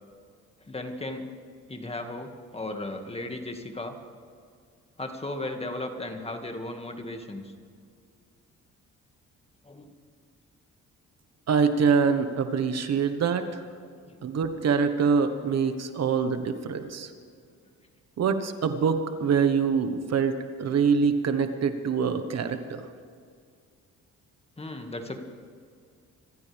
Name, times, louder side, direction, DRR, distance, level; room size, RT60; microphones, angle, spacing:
voice 1, 0.7-1.2 1.7-4.0 5.0-7.5 9.7-9.9 14.1-14.2 16.1-16.3 24.6-25.2, left 2 dB, 20° left, 4 dB, 2.1 m, -36 dB
voice 2, 11.5-13.6 14.2-17.1 18.2-22.8, right 6 dB, 60° right, 8 dB, 1.4 m, -25 dB
26.0 x 15.0 x 3.5 m, 2.2 s
cardioid pair, 90°, 30 cm